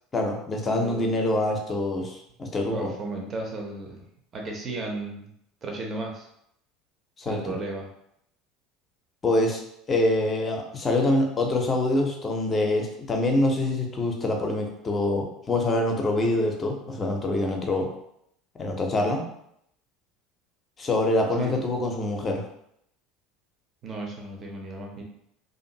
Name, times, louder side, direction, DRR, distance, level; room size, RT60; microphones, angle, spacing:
voice 1, 0.1-2.9 7.2-7.5 9.2-9.6 9.9-17.9 18.6-19.2 20.8-22.4, left 2 dB, 25° left, 2 dB, 0.6 m, -25 dB
voice 2, 0.6-1.1 2.7-4.0 4.3-5.3 5.6-6.3 7.3-7.9 21.4-21.6 23.8-25.0, right 2 dB, 30° right, 0 dB, 0.6 m, -34 dB
2.5 x 2.4 x 2.7 m, 0.74 s
figure-of-eight pair, 70°, 0 cm